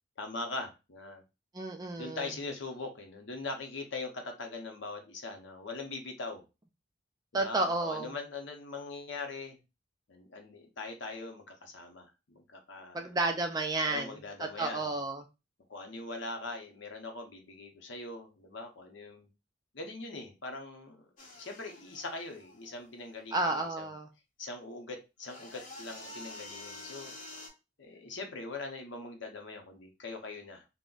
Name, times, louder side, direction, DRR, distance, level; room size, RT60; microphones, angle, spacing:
voice 1, 0.2-1.2 2.0-6.4 7.3-9.6 10.1-13.2 13.9-14.9 15.7-19.3 19.7-21.1 21.4-23.9 24.4-27.1 27.8-30.7, left 3 dB, 65° left, 4 dB, 0.7 m, -41 dB
voice 2, 1.5-2.3 7.3-8.1 12.9-15.2 23.3-24.1, right 2 dB, 20° right, 4 dB, 0.3 m, -32 dB
sound 1, 21.2-23.2 25.2-27.5, left 2 dB, 40° left, 0.8 m, -48 dB
3.8 x 2.0 x 2.3 m, 0.27 s
head